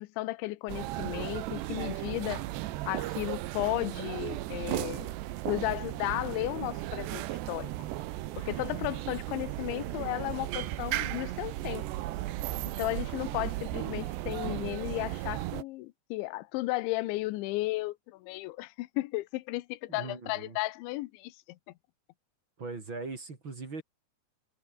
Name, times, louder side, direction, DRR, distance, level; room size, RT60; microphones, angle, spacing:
voice 1, 0.0-2.5 2.9-5.1 5.4-7.7 8.4-11.8 12.8-21.4, left 19 dB, 85° left, 3.2 m, -34 dB
sound 1, 0.7-15.6, right 16 dB, 75° right, 3.1 m, -35 dB
voice 2, 19.9-20.6 22.6-23.8, right 3 dB, 30° right, 3.4 m, -40 dB
omnidirectional pair, 5.2 m